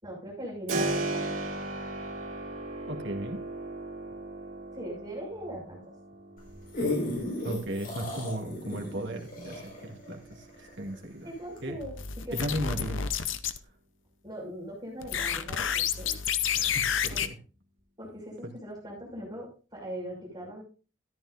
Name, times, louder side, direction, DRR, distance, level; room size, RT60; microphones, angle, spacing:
voice 1, 0.0-1.4 4.7-5.8 11.2-12.5 14.2-16.1 17.1-17.2 18.0-20.6, right 1 dB, 20° right, -3 dB, 6.0 m, -40 dB
Keyboard (musical), 0.7-11.4, right 2 dB, 85° right, 3.1 m, -38 dB
voice 2, 2.9-3.4 7.4-11.3 11.6-11.8 12.3-13.0 16.5-17.3 18.4-18.5, right 1 dB, 65° right, 2 dB, 2.3 m, -36 dB
sound 1, 6.4-11.0 11.6-11.7, left 2 dB, 50° left, 5.2 m, -34 dB
sound 2, 11.8-13.6 15.0-17.3, left 8 dB, 70° left, 0.8 m, -30 dB
14.0 x 11.0 x 2.6 m, 0.35 s
head